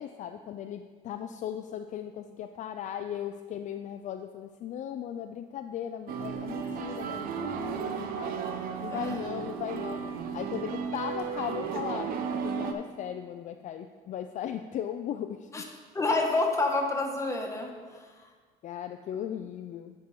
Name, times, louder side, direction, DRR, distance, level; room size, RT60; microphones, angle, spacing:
voice 1, 0.0-8.4 8.8-10.0 10.3-15.5 18.6-19.9, left 9 dB, 50° left, 7 dB, 0.4 m, -37 dB
sound 1, 6.1-12.7, right 6 dB, 65° right, 0.8 m, -34 dB
voice 2, 15.9-18.3, left 2 dB, 20° left, 1 dB, 1.2 m, -29 dB
9.5 x 4.5 x 5.4 m, 1.5 s
cardioid pair, 120°, 16 cm